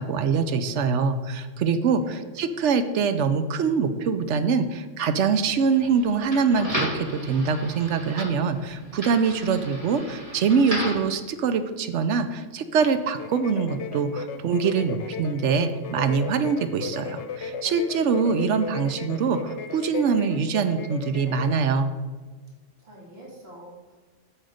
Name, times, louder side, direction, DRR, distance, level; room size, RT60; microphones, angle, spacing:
voice 1, 0.0-21.9, right 5 dB, 70° right, 10 dB, 0.9 m, -24 dB
sound 1, 5.2-11.1, equal, 30° right, 2.3 m, -35 dB
sound 2, 13.1-21.7, left 5 dB, 70° left, 0.9 m, -36 dB
voice 2, 22.8-24.0, right 1 dB, 55° right, -4 dB, 2.4 m, -45 dB
7.8 x 6.4 x 5.0 m, 1.4 s
omnidirectional pair, 1.3 m